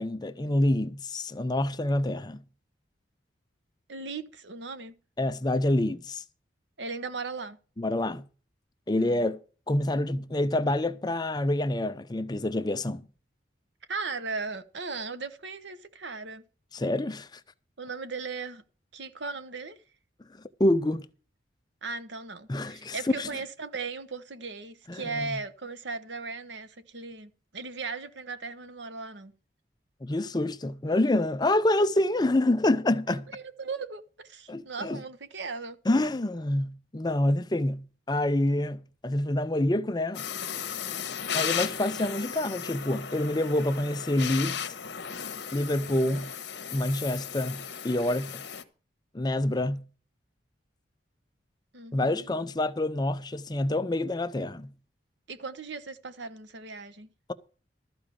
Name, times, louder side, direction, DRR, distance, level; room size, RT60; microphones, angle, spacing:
voice 1, 0.0-2.4 5.2-6.2 7.8-8.3 8.9-9.4 9.7-13.0 16.7-17.4 20.6-21.1 22.5-23.3 24.9-25.4 30.0-33.3 34.5-35.0 35.9-40.2 41.3-44.8 45.5-46.3 46.7-48.4 49.1-49.9 51.9-54.7, left 1 dB, 20° left, 0.5 m, -27 dB
voice 2, 3.9-4.9 6.8-7.6 9.0-9.2 13.9-16.4 17.8-18.6 18.9-19.8 21.8-29.4 33.1-35.8 45.9-46.2 51.7-52.3 55.3-57.1, right 4 dB, 75° right, 1.1 m, -37 dB
sound 1, 40.1-48.6, left 8 dB, 65° left, 1.2 m, -35 dB
13.5 x 4.9 x 8.4 m
head